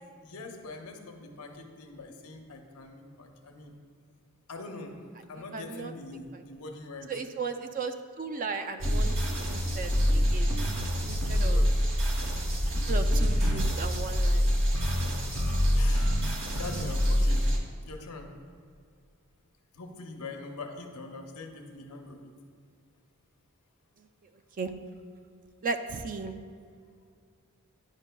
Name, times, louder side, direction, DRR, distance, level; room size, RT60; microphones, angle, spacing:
voice 1, 0.2-3.7 4.5-5.0 5.3-7.1 11.3-11.7 12.1-13.4 13.6-13.9 15.7-16.2 16.6-17.5 17.8-18.3 19.7-22.3, left 3 dB, 80° left, 3 dB, 0.7 m, -43 dB
voice 2, 5.5-5.9 6.3-6.4 7.1-9.1 9.5-10.5 11.0-11.6 12.9-14.5 24.0-24.1 24.6-24.7 25.6-26.4, right 4 dB, 40° right, 8 dB, 0.3 m, -36 dB
sound 1, 8.8-17.6, equal, 60° right, 0.9 m, -26 dB
9.7 x 5.3 x 2.2 m, 2.3 s
head